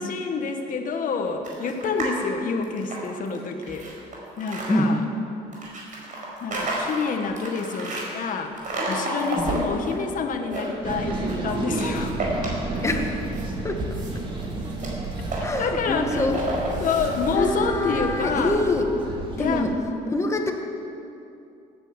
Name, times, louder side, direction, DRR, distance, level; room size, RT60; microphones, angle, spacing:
voice 1, 0.0-3.9 4.4-5.0 6.4-12.2 15.6-16.3 16.8-18.6 19.4-19.7, left 5 dB, 50° left, 5 dB, 1.8 m, -28 dB
sound 1, 1.4-2.2 2.6-4.7 5.5-8.1 8.6-9.9 10.3-11.4 11.8-13.0 13.3-17.3, right 2 dB, 50° right, 4.9 m, -31 dB
sound 2, 10.8-19.7, right 2 dB, 30° right, 2.5 m, -31 dB
voice 2, 12.8-13.2 13.6-13.8 15.4-16.4 17.3-18.8 19.4-19.7 20.1-20.5, left 2 dB, 15° left, 3 dB, 1.9 m, -25 dB
17.0 x 10.5 x 7.2 m, 2.7 s
cardioid pair, 110°, 17 cm